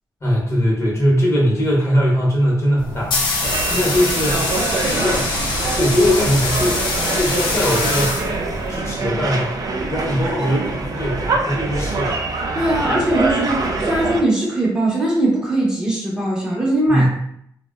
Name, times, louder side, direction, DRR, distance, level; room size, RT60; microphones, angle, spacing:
voice 1, 0.2-3.3 3.7-4.4 4.9-5.3 5.8-6.8 7.1-8.4 8.7-12.2 16.9-17.1, equal, 40° left, -4 dB, 0.9 m, -20 dB
sound 1, 2.8-8.8, left 2 dB, 75° left, 0.6 m, -24 dB
sound 2, 3.4-14.2, right 3 dB, 50° right, 0.4 m, -24 dB
voice 2, 12.5-17.1, right 1 dB, 10° right, -5 dB, 0.8 m, -20 dB
2.6 x 2.1 x 2.3 m, 0.69 s
cardioid pair, 85°, 8 cm